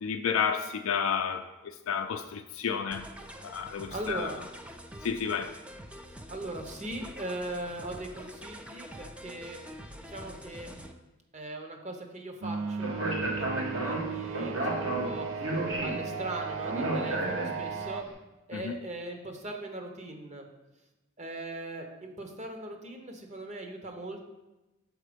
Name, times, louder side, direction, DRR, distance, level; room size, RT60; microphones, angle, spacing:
voice 1, 0.0-3.1 3.4-4.3 5.0-5.5 18.5-18.8, left 7 dB, 80° left, 6 dB, 0.4 m, -31 dB
sound 1, 2.9-10.9, equal, 5° right, 0.4 m, -46 dB
voice 2, 3.9-4.4 6.3-9.6 10.1-10.7 11.3-15.3 15.8-18.0 18.5-20.5 21.2-24.3, right 1 dB, 35° right, 4 dB, 0.9 m, -39 dB
sound 2, 12.4-18.0, right 5 dB, 90° right, 0.4 m, -36 dB
Speech, 12.8-17.9, right 1 dB, 75° right, 1.6 m, -32 dB
6.6 x 4.4 x 5.0 m, 1.0 s
head